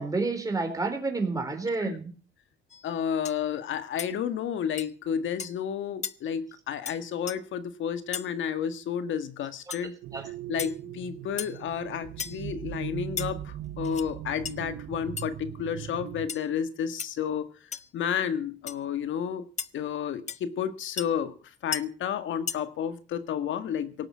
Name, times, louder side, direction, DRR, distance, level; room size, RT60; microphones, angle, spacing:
voice 1, 0.0-2.1 10.1-10.3, right 3 dB, 15° right, 3 dB, 4.0 m, -29 dB
sound 1, 2.7-2.9 3.2-3.4 4.0-4.1 4.8-4.9 5.4-5.6 6.0-6.1 6.8-7.0 7.3-7.4 8.1-8.3 9.7-9.8 10.6-10.8 11.4-11.6 12.2-12.4 13.2-13.3 13.8-14.1 14.4-14.5 15.2-15.3 16.3-16.5 17.0-17.1 17.7-17.9 18.7-18.8 19.6-19.7 20.3-20.4 21.0-21.1 21.7-21.8 22.5-22.6, left 6 dB, 35° left, 0.8 m, -35 dB
voice 2, 2.8-9.9 10.5-17.5 17.9-19.5 19.7-21.3 21.6-24.1, left 8 dB, 75° left, 11 dB, 1.7 m, -31 dB
sound 2, 10.0-16.3, right 12 dB, 80° right, 0.9 m, -39 dB
18.0 x 7.1 x 8.4 m, 0.40 s
cardioid pair, 90°, 20 cm